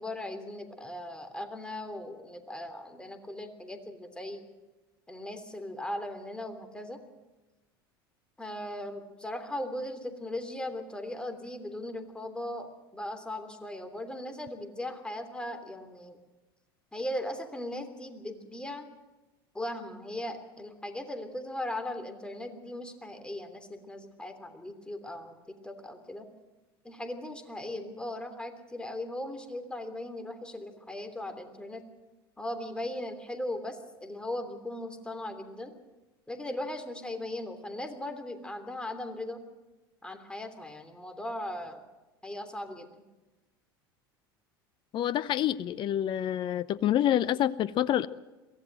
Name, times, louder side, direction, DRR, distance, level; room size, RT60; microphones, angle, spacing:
voice 1, 0.0-4.4 5.1-7.0 8.4-16.2 16.9-18.9 19.5-26.3 26.8-31.8 32.4-35.7 36.3-39.4 40.0-41.8 42.2-43.0, left 1 dB, 5° left, 7 dB, 3.2 m, -38 dB
voice 2, 44.9-48.1, left 11 dB, 40° left, 18 dB, 0.7 m, -27 dB
23.0 x 16.0 x 7.7 m, 1.1 s
hypercardioid pair, 80°, 13 cm